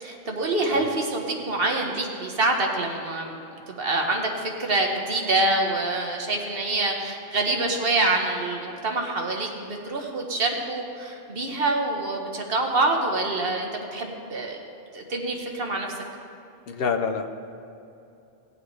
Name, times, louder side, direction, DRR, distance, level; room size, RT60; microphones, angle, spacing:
voice 1, 0.0-3.3 3.7-14.6 14.9-15.9, right 2 dB, 65° right, 2 dB, 1.5 m, -26 dB
voice 2, 16.7-17.3, left 5 dB, 70° left, 6 dB, 0.8 m, -26 dB
18.0 x 8.3 x 3.2 m, 2.7 s
omnidirectional pair, 1.1 m